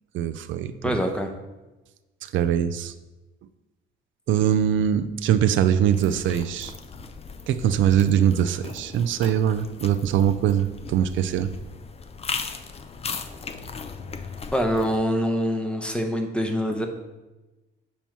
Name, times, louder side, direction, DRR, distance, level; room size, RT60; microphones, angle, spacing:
voice 1, 0.1-1.0 2.2-2.9 4.3-6.7 7.5-11.5, right 9 dB, 75° right, 10 dB, 0.4 m, -22 dB
voice 2, 0.8-1.3 14.5-16.9, equal, 5° left, 4 dB, 0.8 m, -25 dB
sound 1, 5.9-15.0, left 5 dB, 30° left, 0.5 m, -37 dB
7.0 x 3.0 x 5.9 m, 1.1 s
cardioid pair, 90°, 20 cm